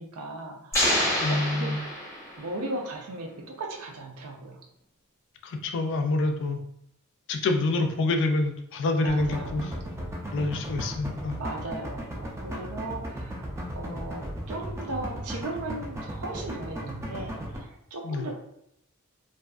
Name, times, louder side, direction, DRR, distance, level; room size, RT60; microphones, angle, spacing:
voice 1, 0.0-1.8 2.4-4.6 9.0-9.7 11.4-13.5 13.7-18.3, right 2 dB, 75° right, 1 dB, 0.5 m, -37 dB
sound 1, 0.7-2.6, left 1 dB, 15° left, 0.7 m, -27 dB
voice 2, 1.2-1.8 5.4-6.6 7.3-9.7 10.3-11.4 18.0-18.3, left 2 dB, 55° left, 4 dB, 0.4 m, -27 dB
sound 2, 9.1-17.6, right 1 dB, 15° right, 0.4 m, -36 dB
2.6 x 2.4 x 2.3 m, 0.77 s
head